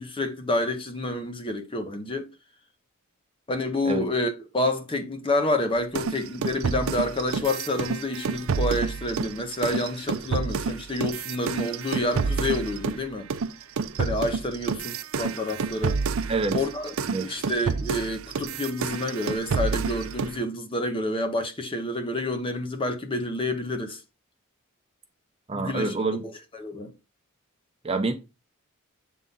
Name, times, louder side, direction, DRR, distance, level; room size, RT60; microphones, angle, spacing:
voice 1, 0.0-2.3 3.5-13.3 14.0-16.0 16.5-16.9 17.2-24.0 25.5-25.9 26.2-26.9, left 1 dB, 25° left, 0.8 m, -28 dB
sound 1, 5.9-13.0 13.3-20.4, right 5 dB, 70° right, 0.5 m, -29 dB
voice 2, 25.5-26.2 27.8-28.1, right 3 dB, 25° right, 0.7 m, -26 dB
7.9 x 3.7 x 4.0 m
head